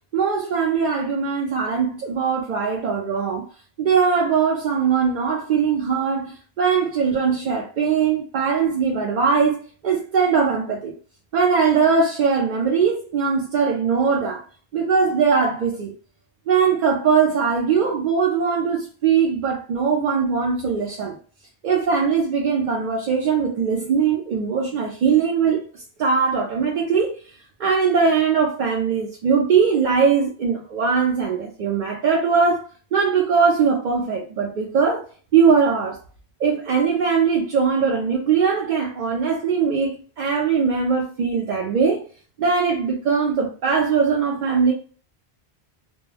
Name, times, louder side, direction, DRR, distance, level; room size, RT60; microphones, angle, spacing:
voice 1, 0.1-3.5 3.8-11.0 11.3-14.4 14.7-15.9 16.5-21.2 21.6-27.2 27.6-32.6 32.9-35.0 35.3-36.0 36.4-42.1 42.4-44.7, right 6 dB, 55° right, 0.6 m, -20 dB
2.2 x 2.1 x 3.1 m
omnidirectional pair, 1.1 m